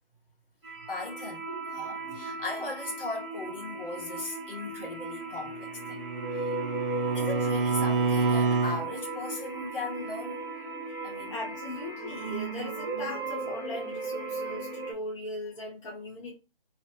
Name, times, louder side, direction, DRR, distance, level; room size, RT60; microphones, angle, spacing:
sound 1, 0.6-14.9, right 3 dB, ahead, 0.5 m, -37 dB
voice 1, 0.9-6.0 6.3-6.5 7.1-10.5 11.0-11.4, left 2 dB, 65° left, 1.7 m, -38 dB
Bowed string instrument, 5.5-8.9, right 4 dB, 65° right, 0.6 m, -28 dB
voice 2, 11.3-16.4, left 2 dB, 30° left, 1.4 m, -39 dB
3.3 x 2.5 x 4.1 m
hypercardioid pair, 160°, 29 cm